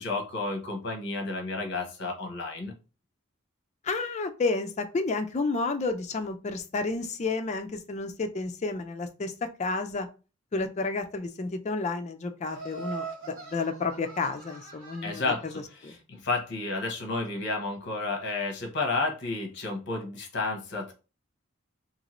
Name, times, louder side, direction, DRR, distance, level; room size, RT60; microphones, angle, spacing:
voice 1, 0.0-2.7 15.0-15.4 15.8-20.9, left 3 dB, 55° left, 2 dB, 0.8 m, -31 dB
voice 2, 3.8-10.1 10.5-16.0, left 3 dB, 30° left, 7 dB, 0.4 m, -31 dB
Laughter, 12.5-15.7, right 4 dB, 80° right, 1.7 m, -42 dB
2.8 x 2.6 x 2.9 m, 0.33 s
head